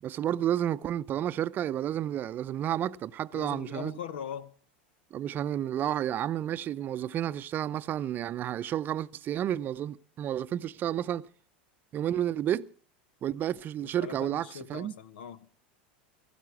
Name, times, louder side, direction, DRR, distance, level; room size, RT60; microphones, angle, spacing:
voice 1, 0.0-4.0 5.1-11.3 11.9-12.7 13.2-14.9, right 11 dB, 35° right, 0.6 m, -31 dB
voice 2, 3.3-4.5 13.8-15.5, left 8 dB, 80° left, 1.2 m, -41 dB
17.0 x 15.0 x 4.8 m
hypercardioid pair, 105°, 5 cm